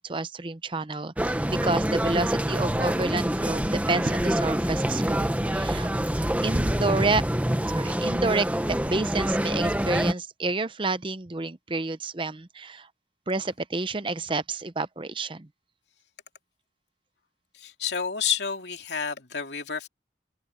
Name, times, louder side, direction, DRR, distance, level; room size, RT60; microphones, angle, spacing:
voice 1, 0.0-5.9 6.4-7.2 7.7-12.9 13.3-15.5, right 3 dB, 30° right, 0.7 m, -29 dB
sound 1, 1.2-10.1, equal, 10° right, 1.0 m, -26 dB
voice 2, 17.6-19.9, left 7 dB, 80° left, 2.6 m, -30 dB
open air
head